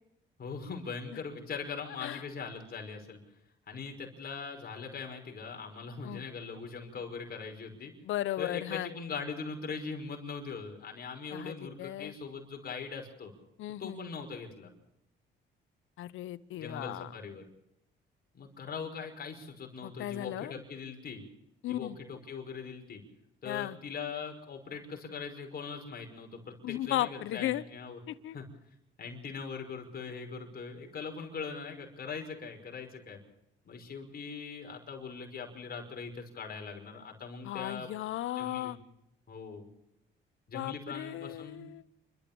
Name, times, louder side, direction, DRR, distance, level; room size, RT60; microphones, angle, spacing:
voice 1, 0.4-3.2 3.7-7.9 8.4-13.3 13.8-14.7 16.6-17.4 18.3-21.2 21.7-23.0 23.4-28.0 28.3-28.4 29.0-33.2 33.6-37.9 38.4-38.8 39.3-39.7 40.5-41.7, left 5 dB, 50° left, 2 dB, 5.7 m, -41 dB
voice 2, 8.0-8.9 11.3-12.1 13.6-14.0 16.0-17.1 19.8-20.5 21.6-22.0 23.4-23.8 26.6-27.6 28.1-28.4 37.4-38.8 40.5-41.8, left 14 dB, 80° left, 16 dB, 1.0 m, -36 dB
28.5 x 13.0 x 7.0 m, 0.86 s
cardioid pair, 90°, 20 cm